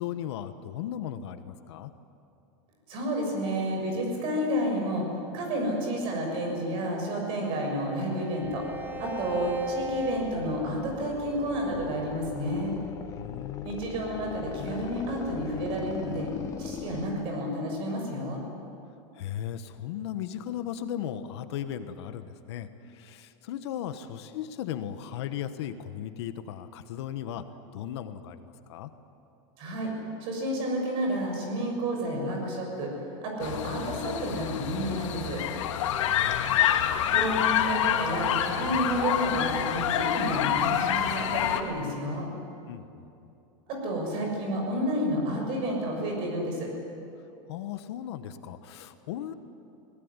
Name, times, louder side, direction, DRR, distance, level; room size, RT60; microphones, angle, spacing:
voice 1, 0.0-1.9 13.2-13.7 19.1-27.4 27.7-28.9 36.0-36.6 42.7-43.3 47.5-49.3, left 10 dB, 60° left, 10 dB, 1.2 m, -37 dB
voice 2, 2.9-5.0 5.3-8.6 9.0-12.7 13.6-16.3 16.6-18.4 29.6-29.9 30.2-32.9 33.2-35.4 37.1-42.3 43.7-46.7, equal, 35° right, 1 dB, 6.5 m, -30 dB
Bowed string instrument, 6.7-11.2, right 3 dB, 15° right, 2.5 m, -40 dB
sound 1, 8.4-17.1, left 8 dB, 20° left, 0.9 m, -41 dB
sound 2, 33.4-41.6, left 10 dB, 80° left, 2.1 m, -27 dB
24.0 x 18.5 x 9.7 m, 2.7 s
supercardioid pair, 175°, 16 cm